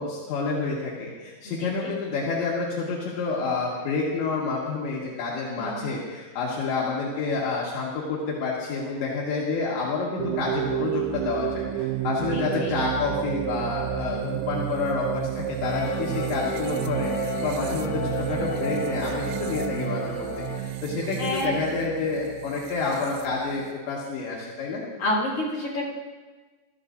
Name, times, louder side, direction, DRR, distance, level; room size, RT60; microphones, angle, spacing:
voice 1, 0.0-24.8, left 4 dB, 75° left, -5 dB, 3.9 m, -29 dB
voice 2, 1.4-1.9 5.6-6.0 12.3-12.8 17.6-17.9 21.2-21.6 25.0-25.8, left 1 dB, 35° left, -4 dB, 5.9 m, -30 dB
sound 1, 10.2-23.7, right 13 dB, 90° right, 2.9 m, -31 dB
sound 2, 15.6-20.6, left 5 dB, 55° left, 2.5 m, -34 dB
24.0 x 13.5 x 2.6 m, 1.3 s
omnidirectional pair, 5.2 m